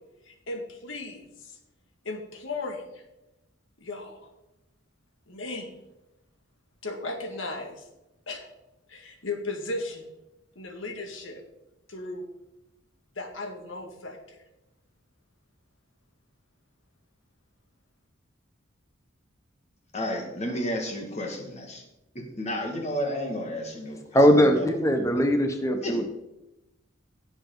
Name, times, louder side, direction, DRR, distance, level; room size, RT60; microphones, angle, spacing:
voice 1, 0.3-1.6 2.0-3.0 3.8-4.3 5.3-5.7 6.8-7.8 8.3-8.5 8.9-10.1 10.6-11.4 11.9-12.2 13.2-14.4, left 2 dB, 75° left, 4 dB, 1.9 m, -36 dB
voice 2, 19.9-21.8 22.2-24.0 24.3-24.7 25.8-26.0, equal, 35° left, 3 dB, 1.9 m, -32 dB
voice 3, 24.1-26.0, equal, 15° left, 5 dB, 0.9 m, -20 dB
16.0 x 7.0 x 3.9 m, 0.93 s
head